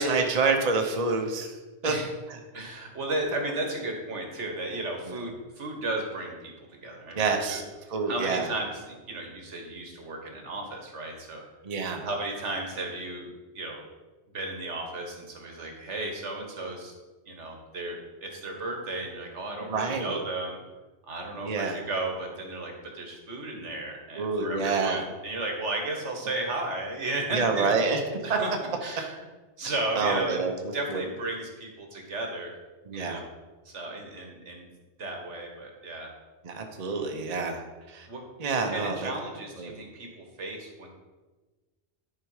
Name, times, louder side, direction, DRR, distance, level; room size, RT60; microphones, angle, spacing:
voice 1, 0.0-1.5 1.8-1.9 5.1-5.2 7.2-7.6 7.9-8.5 11.6-12.0 19.7-20.2 21.4-21.8 24.2-25.0 27.3-28.0 28.3-28.4 30.0-30.5 30.9-31.0 32.9-33.2 36.4-37.6 37.9-38.1 38.4-39.1 39.6-39.7, right 4 dB, 35° right, 4 dB, 0.8 m, -27 dB
voice 2, 2.5-7.6 8.1-11.4 12.0-13.3 13.5-13.8 14.3-16.9 17.3-20.6 21.1-28.5 28.8-29.2 29.6-30.4 30.7-32.5 32.9-33.3 33.6-34.7 35.0-36.1 38.1-38.2 38.5-40.9, right 2 dB, 75° right, 2 dB, 1.7 m, -34 dB
10.5 x 4.8 x 4.8 m, 1.2 s
omnidirectional pair, 1.2 m